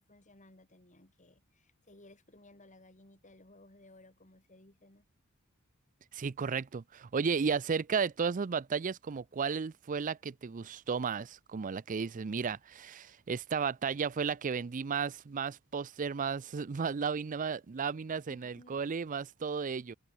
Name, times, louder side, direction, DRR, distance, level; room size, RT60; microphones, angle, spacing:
voice 1, 0.0-5.0 18.3-18.8, left 2 dB, 35° left, 4.6 m, -59 dB
voice 2, 6.1-19.9, right 5 dB, 35° right, 0.4 m, -34 dB
open air
head